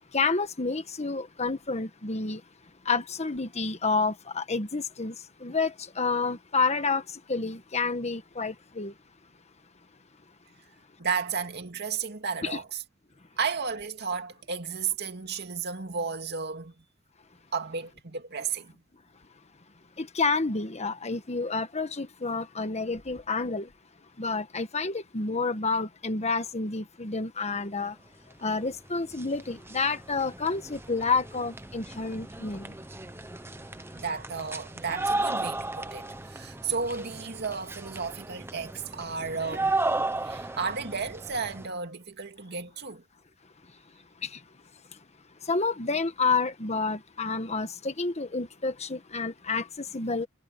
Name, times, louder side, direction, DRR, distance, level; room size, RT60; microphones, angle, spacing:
voice 1, 0.1-2.4 2.8-5.1 5.4-7.0 7.3-8.9 12.4-12.6 20.0-23.7 24.2-28.0 28.4-32.7 44.2-44.4 45.5-50.3, left 4 dB, 35° left, 1.3 m, -29 dB
voice 2, 11.0-12.7 13.4-16.7 17.5-18.7 33.9-39.8 40.2-43.0, right 5 dB, 55° right, 2.4 m, -33 dB
sound 1, 28.6-28.7 29.0-41.7, right 2 dB, 10° right, 1.0 m, -35 dB
head